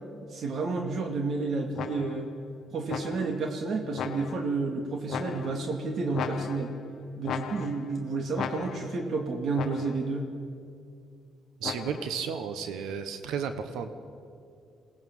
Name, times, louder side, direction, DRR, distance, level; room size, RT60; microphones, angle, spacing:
voice 1, 0.3-2.3 2.7-6.7 7.2-10.3, right 3 dB, 60° right, 4 dB, 2.2 m, -30 dB
sound 1, 1.8-2.3 2.9-3.5 4.0-4.6 5.1-5.8 6.1-6.9 7.2-8.0 8.4-9.1 9.6-10.1 11.6-12.2, left 7 dB, 65° left, 1.2 m, -37 dB
voice 2, 11.6-13.9, right 7 dB, 85° right, 9 dB, 1.3 m, -33 dB
22.0 x 18.5 x 7.4 m, 2.4 s
cardioid pair, 90°, 0 cm